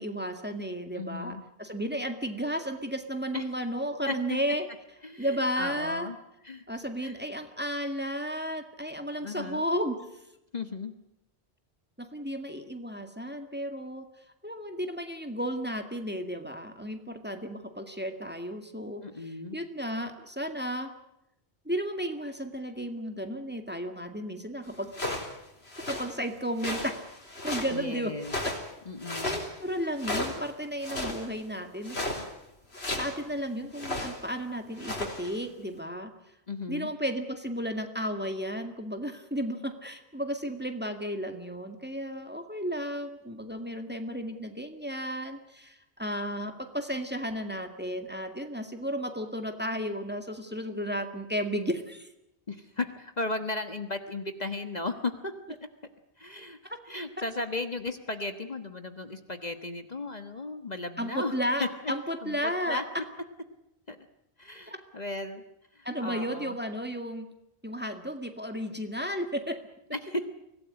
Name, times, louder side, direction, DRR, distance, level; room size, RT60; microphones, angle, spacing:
voice 1, 0.0-4.6 5.2-6.1 6.7-10.0 12.0-14.1 14.4-20.9 21.7-24.9 25.9-26.9 27.4-28.1 29.2-32.2 32.9-36.1 36.7-52.1 57.2-57.3 61.0-62.8 64.7-64.8 65.9-67.3 67.6-69.6, equal, 10° right, 6 dB, 2.0 m, -33 dB
voice 2, 0.9-1.4 3.3-3.5 4.1-4.2 5.0-6.2 6.4-6.6 7.0-7.2 9.2-9.6 10.5-10.9 19.0-19.6 27.7-28.3 28.8-29.4 36.5-36.9 52.5-55.3 56.2-61.3 61.6-61.9 62.2-62.8 63.9-64.0 64.4-65.4 65.7-66.6 69.9-70.3, left 2 dB, 40° left, 8 dB, 1.5 m, -35 dB
sound 1, 24.9-25.3 25.7-26.1 26.6-27.8 28.2-28.7 29.0-29.5 30.0-30.5 30.8-31.3 31.8-32.2 32.7-33.1 33.7-34.2 34.7-35.3, left 1 dB, 75° left, 4.4 m, -34 dB
24.5 x 17.0 x 9.7 m, 0.84 s
omnidirectional pair, 1.1 m